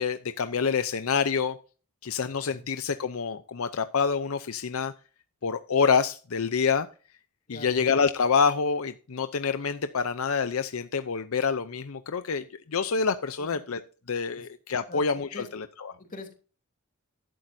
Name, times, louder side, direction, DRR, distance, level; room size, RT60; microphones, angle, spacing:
voice 1, 0.0-1.6 2.0-4.9 5.4-6.9 7.5-13.8 14.1-15.9, left 5 dB, 80° left, 11 dB, 0.6 m, -27 dB
voice 2, 7.5-7.8 13.4-13.6 14.3-14.5 14.9-15.0 15.3-15.5 16.0-16.3, left 2 dB, 40° left, 3 dB, 3.0 m, -42 dB
12.5 x 11.5 x 2.7 m, 0.37 s
head